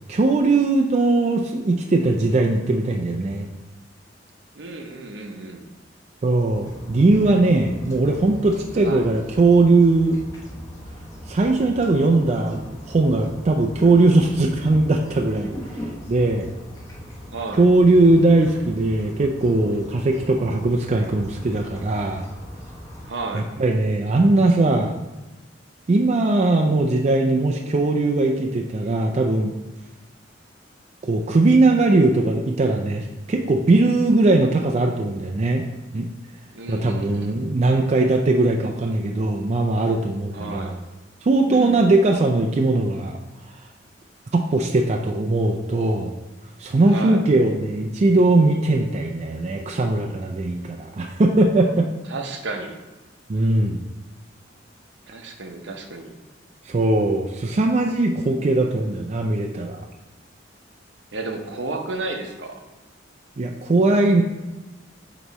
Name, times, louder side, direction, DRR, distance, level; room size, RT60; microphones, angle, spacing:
voice 1, 0.1-3.5 6.2-10.2 11.3-15.5 16.1-16.5 17.6-22.2 23.3-25.0 25.9-29.5 31.0-35.6 35.9-36.1 36.7-40.7 41.2-43.2 44.3-46.2 46.6-51.9 53.3-53.8 56.6-59.8 63.4-64.2, right 2 dB, 35° right, 1 dB, 0.4 m, -19 dB
voice 2, 4.6-5.7 8.8-9.1 17.3-17.7 23.0-23.5 36.5-37.4 40.3-40.7 41.5-41.9 46.9-47.3 52.1-52.8 55.1-56.1 61.1-62.6, right 2 dB, 70° right, 4 dB, 0.8 m, -32 dB
sound 1, 6.5-23.1, equal, 15° left, 1.0 m, -39 dB
8.0 x 3.0 x 4.1 m, 1.1 s
head